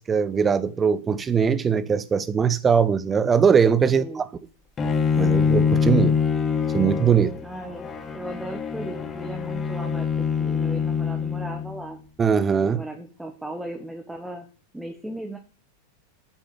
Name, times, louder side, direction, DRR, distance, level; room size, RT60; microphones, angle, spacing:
voice 1, 0.0-4.2 5.2-6.2 6.7-7.4 12.2-12.8, right 6 dB, 20° right, 0.9 m, -21 dB
voice 2, 3.9-4.2 7.4-10.1 10.4-12.0 12.6-14.5 14.7-15.4, right 1 dB, 5° right, 1.5 m, -37 dB
Bowed string instrument, 4.8-11.8, left 6 dB, 20° left, 1.5 m, -24 dB
8.9 x 7.2 x 7.6 m
figure-of-eight pair, 90°, 0 cm